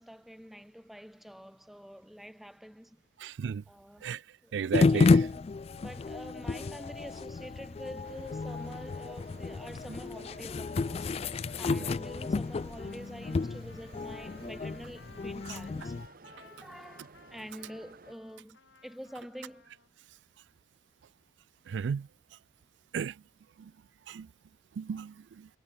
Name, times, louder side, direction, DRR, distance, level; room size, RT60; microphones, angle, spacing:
voice 1, 0.0-3.0 3.7-4.1 4.4-15.9 16.3-19.7, equal, ahead, 1.0 m, -47 dB
voice 2, 3.2-3.6 4.0-4.2 4.5-5.1 21.7-22.1 22.9-23.1 24.1-24.3 24.8-25.5, right 7 dB, 75° right, 0.3 m, -33 dB
sound 1, 4.7-16.1, left 4 dB, 35° left, 0.3 m, -30 dB
sound 2, 8.0-18.1, right 3 dB, 50° right, 1.1 m, -55 dB
Trumpet, 12.8-19.9, left 4 dB, 85° left, 3.0 m, -58 dB
head